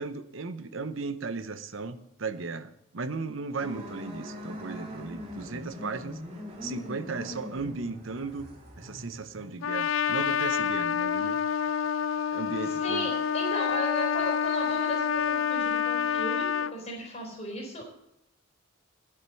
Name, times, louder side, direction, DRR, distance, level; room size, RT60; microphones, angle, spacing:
voice 1, 0.0-6.2 6.6-8.5 8.8-11.4 12.3-13.1, right 4 dB, 75° right, 12 dB, 0.8 m, -36 dB
sound 1, 3.6-9.5, left 1 dB, 30° right, 2.5 m, -42 dB
Trumpet, 9.6-16.7, left 8 dB, 75° left, 0.4 m, -28 dB
voice 2, 12.7-17.8, equal, 35° left, 1 dB, 4.0 m, -35 dB
10.5 x 7.7 x 7.7 m, 0.84 s
head